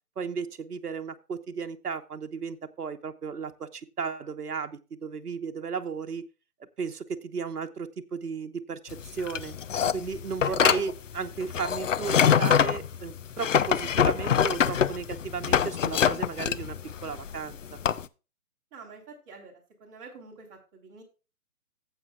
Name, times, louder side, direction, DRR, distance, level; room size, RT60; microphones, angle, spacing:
voice 1, 0.2-6.2 6.6-9.5 9.9-17.8, right 5 dB, 75° right, 7 dB, 1.2 m, -35 dB
sound 1, 8.9-18.0, left 8 dB, 55° left, 0.6 m, -25 dB
voice 2, 18.7-21.0, right 4 dB, 20° right, -3 dB, 3.6 m, -48 dB
15.0 x 8.1 x 2.4 m, 0.31 s
figure-of-eight pair, 150°, 46 cm